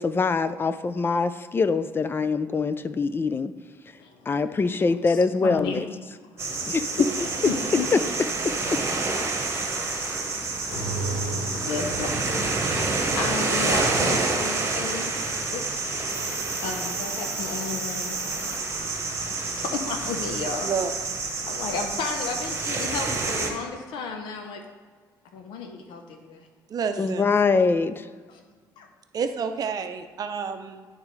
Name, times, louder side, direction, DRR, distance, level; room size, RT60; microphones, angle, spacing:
voice 1, 0.0-3.5 4.3-5.9 6.6-6.9 7.9-8.0 8.4-8.8 27.0-28.1, left 4 dB, 25° left, 13 dB, 0.4 m, -24 dB
voice 2, 4.8-5.8 6.2-6.7 7.4-7.9 11.2-15.2 15.5-15.6 16.6-18.6 19.2-20.7 21.5-24.6 25.3-26.5 28.3-28.4 28.8-28.9, left 4 dB, 80° left, 4 dB, 0.8 m, -33 dB
sound 1, 6.4-23.5, right 3 dB, 35° right, 1.1 m, -28 dB
sound 2, 10.7-17.1, right 1 dB, 65° left, 1.3 m, -36 dB
sound 3, 15.2-19.1, right 1 dB, 5° left, 1.0 m, -41 dB
voice 3, 20.6-20.9 26.7-27.3 29.1-30.9, right 6 dB, 50° right, 7 dB, 0.6 m, -29 dB
11.0 x 3.6 x 3.2 m, 1.5 s
cardioid pair, 85°, 8 cm